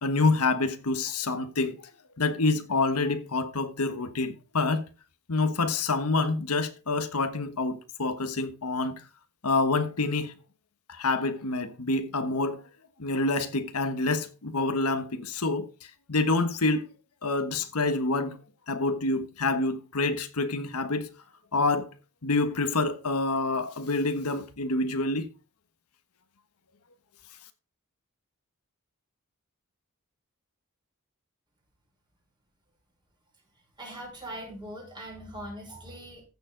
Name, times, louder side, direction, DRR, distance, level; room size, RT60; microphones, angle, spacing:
voice 1, 0.0-1.8 2.2-4.8 5.3-9.0 9.4-10.3 10.9-12.6 13.0-15.7 16.1-16.9 17.2-18.4 18.7-21.1 21.5-21.9 22.2-25.3, left 3 dB, 90° left, 1.3 m, -27 dB
voice 2, 33.8-36.2, right 1 dB, 20° right, 5.1 m, -41 dB
15.0 x 6.9 x 3.9 m
head